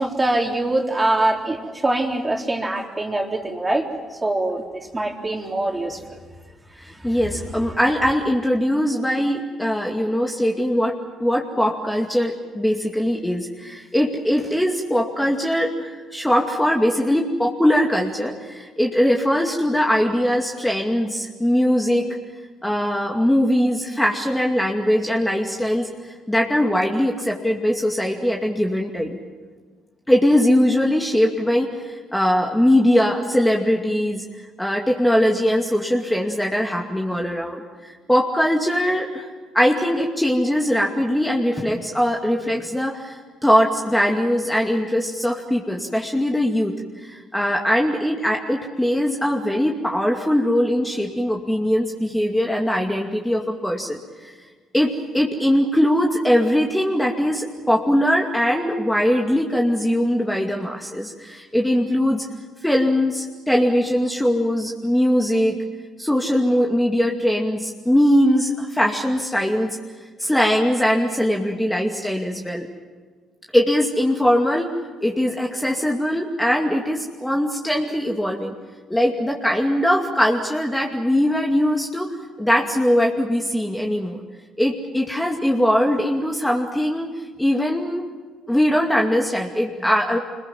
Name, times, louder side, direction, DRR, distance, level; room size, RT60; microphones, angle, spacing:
voice 1, 0.0-3.9 4.2-4.6 4.9-6.0, right 2 dB, 20° right, 1 dB, 3.8 m, -23 dB
voice 2, 6.8-10.9 11.2-22.1 22.6-29.2 30.1-34.2 34.6-39.3 39.5-46.7 47.0-54.3 54.7-62.3 62.6-65.6 66.0-69.8 70.2-72.7 73.5-74.7 75.0-78.5 78.9-82.1 82.4-84.2 84.6-87.1 87.4-88.1 88.5-90.2, equal, 10° left, 0 dB, 2.4 m, -21 dB
26.0 x 21.0 x 7.7 m, 1.4 s
supercardioid pair, 65°, 0 cm